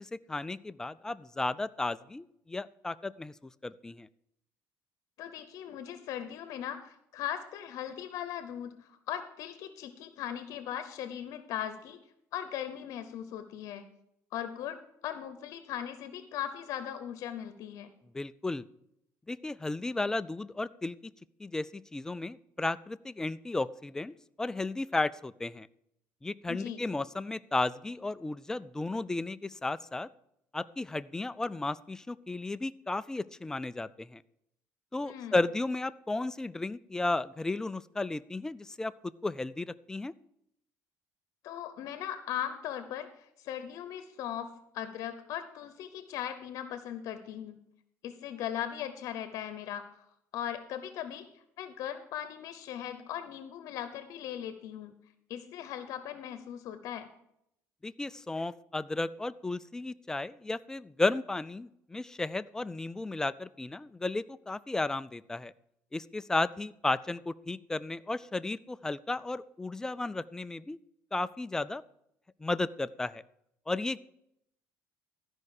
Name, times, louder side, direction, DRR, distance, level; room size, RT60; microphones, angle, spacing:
voice 1, 0.0-3.3 3.6-4.1 18.1-18.6 19.3-21.0 21.4-25.7 26.2-30.1 30.5-34.2 34.9-38.9 39.2-40.1 57.8-65.5 65.9-70.8 71.1-71.8 72.4-73.2 73.7-74.0, left 2 dB, 10° left, 15 dB, 0.3 m, -34 dB
voice 2, 5.2-12.0 12.3-13.8 14.3-17.9 26.5-26.8 35.0-35.4 41.4-47.6 48.0-49.8 50.3-51.3 51.6-54.9 55.3-57.1, left 10 dB, 65° left, 10 dB, 0.8 m, -39 dB
13.0 x 5.4 x 6.5 m, 0.77 s
cardioid pair, 125°, 6 cm